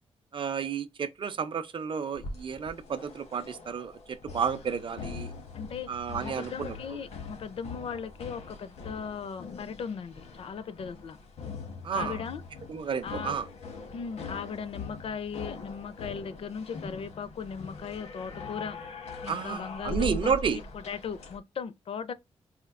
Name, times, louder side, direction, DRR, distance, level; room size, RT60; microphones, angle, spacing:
voice 1, 0.3-3.9 4.3-5.3 5.9-6.7 11.8-12.2 12.7-13.5 19.3-20.6, right 6 dB, 50° right, 0.5 m, -31 dB
sound 1, 2.1-21.4, left 4 dB, 80° left, 0.9 m, -42 dB
voice 2, 5.5-5.9 6.2-11.2 11.9-12.4 13.0-13.3 13.9-18.8 19.2-22.1, left 6 dB, 60° left, 0.5 m, -38 dB
4.3 x 2.3 x 2.4 m
wide cardioid pair, 170°, 11 cm